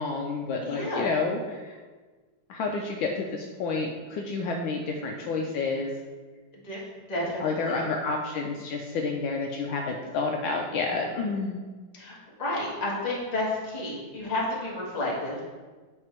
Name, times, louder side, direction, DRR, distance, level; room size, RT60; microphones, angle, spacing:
voice 1, 0.0-1.8 2.5-5.9 7.4-11.6, left 4 dB, 75° left, 1 dB, 1.3 m, -29 dB
voice 2, 0.6-1.1 6.5-6.8 7.1-7.8 11.9-15.4, left 1 dB, 20° left, -4 dB, 1.3 m, -31 dB
8.5 x 3.5 x 4.4 m, 1.4 s
omnidirectional pair, 2.4 m